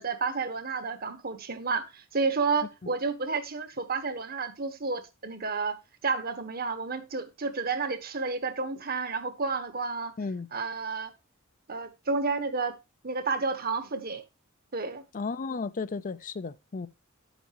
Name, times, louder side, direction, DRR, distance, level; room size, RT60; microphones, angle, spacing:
voice 1, 0.0-5.8 6.0-10.1 10.5-11.1 11.7-12.7 13.0-14.2 14.7-15.0, right 4 dB, 45° right, 1.3 m, -31 dB
voice 2, 15.1-16.9, left 4 dB, 40° left, 0.5 m, -34 dB
10.5 x 8.1 x 3.0 m
head